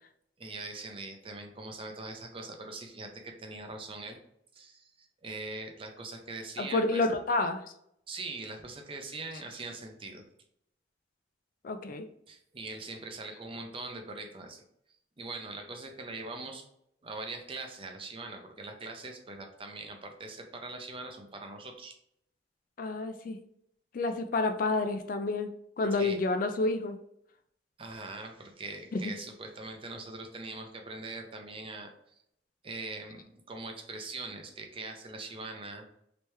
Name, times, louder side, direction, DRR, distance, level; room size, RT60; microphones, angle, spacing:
voice 1, 0.4-4.2 4.5-7.0 8.1-10.2 12.3-14.6 15.2-16.6 17.0-21.9 26.0-26.2 27.8-32.2 32.6-35.8, right 3 dB, 30° right, 4 dB, 0.5 m, -42 dB
voice 2, 6.6-7.6 11.6-12.1 22.8-23.4 23.9-25.5 25.8-27.0 28.9-29.0, left 3 dB, 50° left, 7 dB, 0.3 m, -29 dB
3.3 x 3.0 x 3.2 m, 0.73 s
head